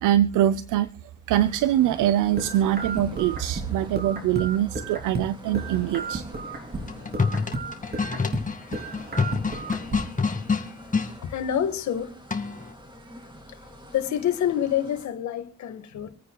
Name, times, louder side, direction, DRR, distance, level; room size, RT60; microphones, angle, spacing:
voice 1, 0.0-0.9 1.3-6.2, right 12 dB, 85° right, 0.7 m, -23 dB
sound 1, 1.4-15.1, equal, 15° right, 2.6 m, -46 dB
sound 2, 2.4-5.3 5.5-8.5 8.7-10.1, right 3 dB, 30° right, 3.1 m, -34 dB
sound 3, 6.8-11.1 12.3-12.7, left 4 dB, 25° left, 1.9 m, -27 dB
voice 2, 11.2-12.2 13.5-13.6 13.9-16.1, left 10 dB, 70° left, 1.7 m, -27 dB
26.5 x 9.3 x 2.3 m
cardioid pair, 90°, 30 cm